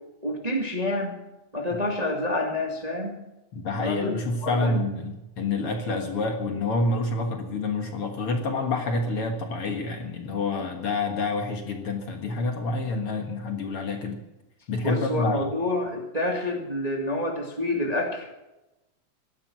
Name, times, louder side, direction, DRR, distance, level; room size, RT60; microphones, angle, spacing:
voice 1, 0.2-1.2 1.5-3.2 3.8-4.1 4.4-4.8 14.8-18.4, left 1 dB, 15° right, 1 dB, 1.7 m, -28 dB
voice 2, 3.5-14.2 14.7-15.5, left 3 dB, 55° left, 4 dB, 2.2 m, -28 dB
17.0 x 12.5 x 6.1 m, 0.96 s
omnidirectional pair, 3.4 m